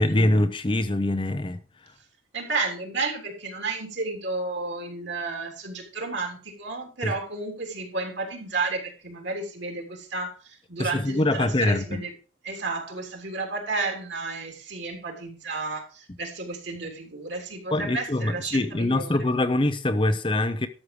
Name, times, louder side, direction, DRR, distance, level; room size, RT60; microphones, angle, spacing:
voice 1, 0.0-1.6 7.0-7.1 10.8-12.0 17.7-20.7, left 1 dB, 25° left, 0.6 m, -24 dB
voice 2, 2.3-12.1 12.4-19.3, right 3 dB, 55° right, 3.5 m, -32 dB
12.5 x 6.6 x 4.9 m
head